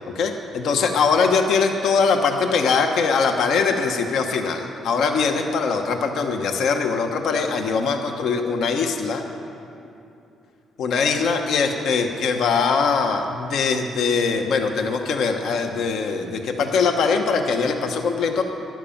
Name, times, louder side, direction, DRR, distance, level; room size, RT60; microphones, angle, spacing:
voice 1, 0.1-9.2 10.8-18.4, left 5 dB, 75° left, 5 dB, 1.1 m, -22 dB
12.5 x 10.5 x 7.2 m, 2.8 s
cardioid pair, 90°, 0 cm